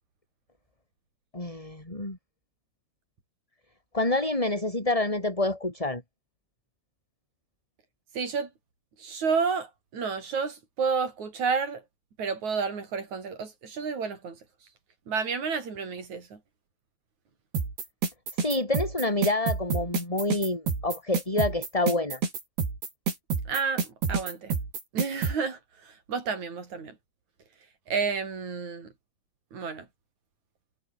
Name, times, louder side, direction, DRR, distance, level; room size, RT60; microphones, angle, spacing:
voice 1, 1.3-2.2 3.9-6.0 18.4-22.2, left 2 dB, 10° left, 3.9 m, -27 dB
voice 2, 8.1-8.5 9.0-11.8 12.2-14.4 15.1-16.4 23.5-24.5 24.9-27.0 27.9-28.9 29.5-29.9, right 5 dB, 45° right, 6.2 m, -30 dB
sound 1, 17.5-25.3, right 5 dB, 90° right, 7.9 m, -28 dB
omnidirectional pair, 4.5 m